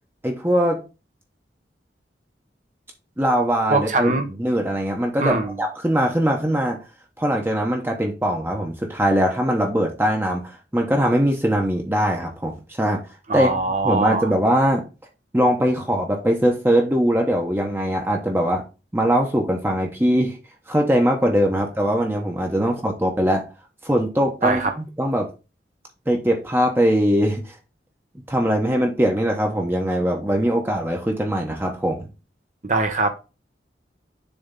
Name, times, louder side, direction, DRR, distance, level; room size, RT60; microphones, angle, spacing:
voice 1, 0.2-0.8 3.2-4.1 4.4-6.8 7.2-13.0 13.3-13.5 13.8-14.8 15.3-18.6 18.9-20.4 20.7-23.5 23.8-25.3 26.1-27.5 28.3-32.1, equal, 10° right, 1.0 m, -21 dB
voice 2, 3.7-4.3 5.2-5.6 13.3-14.3 22.6-22.7 24.4-24.7 32.6-33.1, right 3 dB, 40° right, 0.9 m, -22 dB
7.1 x 3.5 x 5.2 m
head